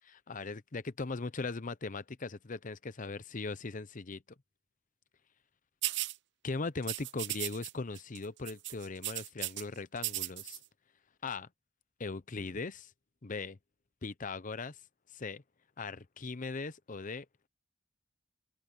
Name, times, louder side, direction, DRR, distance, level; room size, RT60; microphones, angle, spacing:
voice 1, 0.1-4.2 6.4-10.6 11.2-11.5 12.0-12.9 13.2-13.6 14.0-14.8 15.1-15.4 15.8-17.3, left 3 dB, 40° left, 0.7 m, -39 dB
sound 1, 5.8-6.2 6.8-7.7 8.0-8.2 8.5-9.6 10.0-10.6, right 17 dB, 65° right, 0.5 m, -36 dB
head